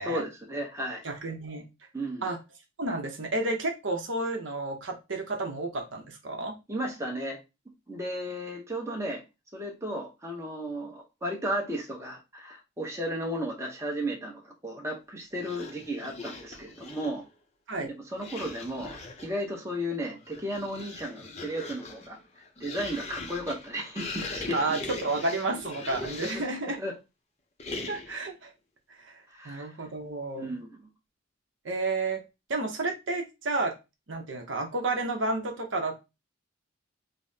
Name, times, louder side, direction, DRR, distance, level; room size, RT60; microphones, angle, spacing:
voice 1, 0.0-1.0 1.9-2.3 6.7-7.4 7.9-9.2 9.5-17.2 17.8-22.2 22.6-24.8 26.3-26.4 26.8-27.0 29.3-29.7 30.4-30.7, equal, 15° right, 0 dB, 0.8 m, -34 dB
voice 2, 1.0-1.6 2.2-2.4 2.8-6.6 17.7-17.9 24.5-26.8 27.9-28.5 29.0-30.5 31.6-32.2 32.5-33.8 34.1-36.0, right 2 dB, 60° right, 3 dB, 0.7 m, -31 dB
sound 1, 15.3-17.3 18.1-19.4 20.1-26.6 27.6-28.3, left 3 dB, 30° left, 0.5 m, -40 dB
5.3 x 2.0 x 2.7 m, 0.25 s
head